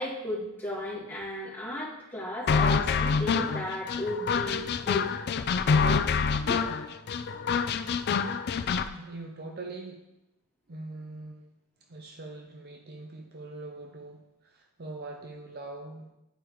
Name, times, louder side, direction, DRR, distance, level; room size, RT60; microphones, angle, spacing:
voice 1, 0.0-5.1 6.5-6.7, left 1 dB, 10° left, -9 dB, 2.2 m, -35 dB
sound 1, 2.5-8.9, left 5 dB, 45° left, 0.3 m, -26 dB
voice 2, 8.9-10.0 10.7-11.5 11.9-16.1, right 2 dB, 45° right, 3 dB, 0.6 m, -42 dB
10.5 x 4.9 x 3.1 m, 0.91 s
head